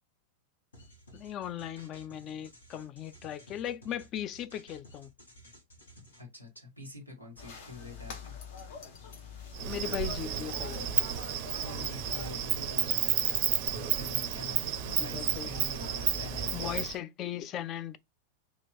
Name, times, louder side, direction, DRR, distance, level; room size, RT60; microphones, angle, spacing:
sound 1, 0.7-6.2, equal, 70° left, 1.2 m, -54 dB
voice 1, 1.1-5.1 9.7-10.8 15.0-15.6 16.5-18.0, left 11 dB, 35° left, 0.3 m, -38 dB
voice 2, 6.2-8.3 11.5-13.2 13.7-16.9, left 2 dB, 90° left, 1.3 m, -46 dB
sound 2, 7.4-17.0, left 6 dB, 50° left, 0.9 m, -46 dB
Insect, 9.5-16.9, right 11 dB, 45° right, 0.4 m, -31 dB
2.9 x 2.4 x 4.0 m
figure-of-eight pair, 90°, 0 cm